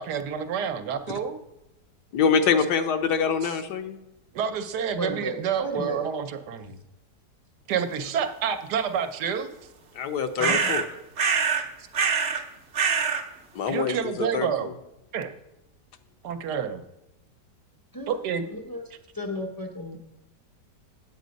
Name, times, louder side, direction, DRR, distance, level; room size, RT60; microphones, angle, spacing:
voice 1, 0.0-1.4 4.3-6.8 7.7-9.5 13.7-14.7 15.1-15.3 16.2-16.8 18.1-18.4, right 7 dB, 75° right, 9 dB, 1.3 m, -28 dB
voice 2, 2.1-4.0 9.9-10.8 13.5-14.7, left 6 dB, 75° left, 8 dB, 1.3 m, -25 dB
voice 3, 5.0-6.1 10.4-10.7 17.9-18.1 18.5-18.8 19.1-20.0, equal, 30° left, 2 dB, 0.3 m, -33 dB
sound 1, 10.4-10.9 11.2-11.7 11.9-12.4 12.7-13.2, right 6 dB, 50° right, 0.8 m, -24 dB
8.3 x 8.1 x 5.1 m, 0.92 s
omnidirectional pair, 1.9 m